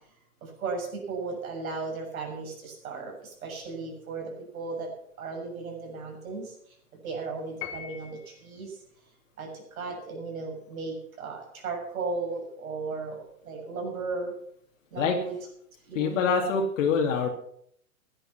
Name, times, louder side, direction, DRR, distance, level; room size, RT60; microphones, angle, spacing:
voice 1, 0.4-4.9 5.2-6.5 7.0-8.8 9.4-14.3 14.9-15.4 15.9-16.2, right 4 dB, 70° right, 1 dB, 7.2 m, -35 dB
Piano, 7.6-8.5, left 9 dB, 40° left, 2.9 m, -40 dB
voice 2, 15.9-17.3, left 5 dB, 55° left, 1 dB, 2.7 m, -25 dB
15.5 x 11.0 x 5.9 m, 0.67 s
hypercardioid pair, 125°, 44 cm